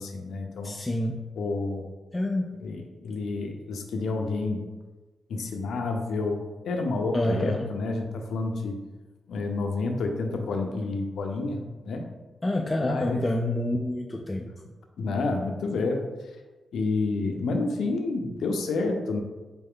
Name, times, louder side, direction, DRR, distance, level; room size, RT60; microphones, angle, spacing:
voice 1, 0.0-0.8 1.4-1.8 2.6-4.6 5.3-8.8 9.3-12.0 12.8-13.2 15.0-16.1 16.7-19.2, left 3 dB, 85° left, 3 dB, 0.6 m, -29 dB
voice 2, 0.6-1.3 2.1-2.6 7.1-7.7 12.4-14.5, left 1 dB, 20° left, 1 dB, 0.4 m, -28 dB
4.2 x 3.3 x 3.6 m, 1.2 s
cardioid pair, 80°, 0 cm